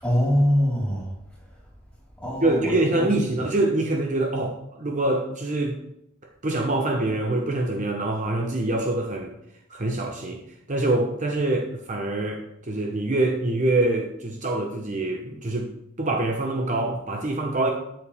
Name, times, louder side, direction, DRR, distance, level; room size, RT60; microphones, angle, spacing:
voice 1, 0.0-1.1 2.2-3.1 3.4-3.5, equal, 5° left, -6 dB, 4.3 m, -23 dB
voice 2, 2.4-5.8 6.4-9.3 9.7-10.4 10.7-17.7, right 2 dB, 35° right, 2 dB, 0.9 m, -25 dB
13.0 x 7.1 x 3.5 m, 0.81 s
head